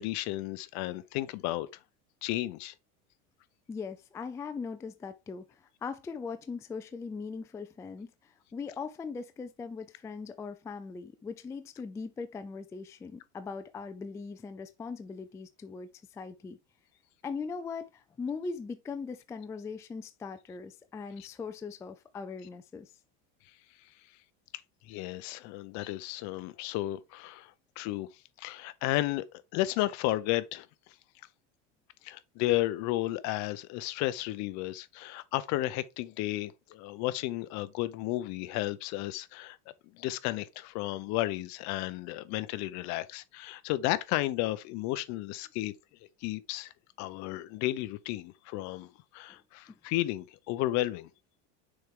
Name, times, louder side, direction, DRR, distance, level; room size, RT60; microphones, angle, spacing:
voice 1, 0.0-1.7 2.2-2.7 24.8-28.1 28.4-29.2 29.5-30.7 32.0-39.6 39.9-45.7 46.2-46.7 47.0-51.1, left 16 dB, 55° left, 0.7 m, -33 dB
voice 2, 3.7-16.6 17.2-22.9 49.3-49.4, left 5 dB, 10° left, 0.3 m, -40 dB
6.4 x 4.5 x 3.6 m
supercardioid pair, 145°, 34 cm